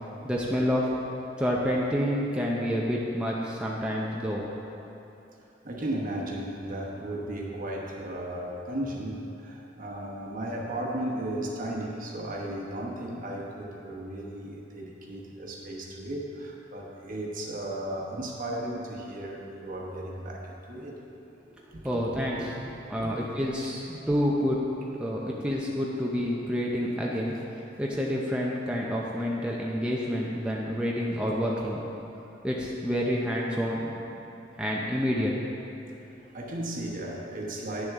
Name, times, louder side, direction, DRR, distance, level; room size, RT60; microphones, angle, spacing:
voice 1, 0.2-0.9 1.4-4.4 21.8-22.5 22.9-31.8 32.4-34.0 34.6-35.3, equal, 5° right, -4 dB, 0.6 m, -28 dB
voice 2, 5.6-21.0 21.7-23.1 23.6-23.7 35.9-37.9, right 1 dB, 45° right, -2 dB, 1.1 m, -35 dB
10.0 x 6.6 x 3.6 m, 2.9 s
head